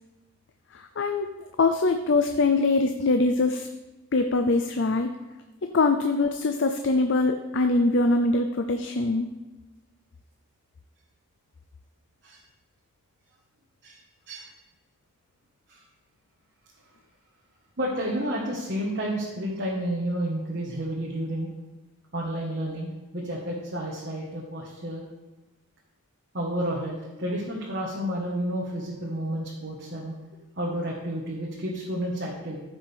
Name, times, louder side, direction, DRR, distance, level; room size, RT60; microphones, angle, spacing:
voice 1, 0.7-1.3 1.6-3.7 4.1-5.1 5.7-9.3, left 3 dB, 55° left, 6 dB, 0.5 m, -23 dB
voice 2, 17.8-21.5 22.1-25.0 26.3-30.1 30.6-32.6, right 1 dB, 50° right, -3 dB, 1.3 m, -31 dB
14.5 x 6.1 x 3.5 m, 1.1 s
head